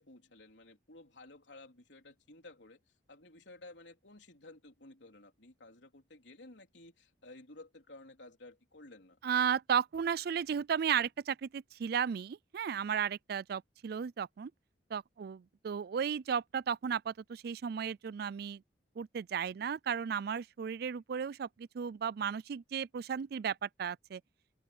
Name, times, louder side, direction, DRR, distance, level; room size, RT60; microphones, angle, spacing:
voice 1, 0.0-2.8 3.1-9.2, left 2 dB, 90° left, 3.6 m, -54 dB
voice 2, 9.2-14.5 14.9-18.6 19.0-24.2, right 7 dB, 60° right, 0.4 m, -34 dB
open air
head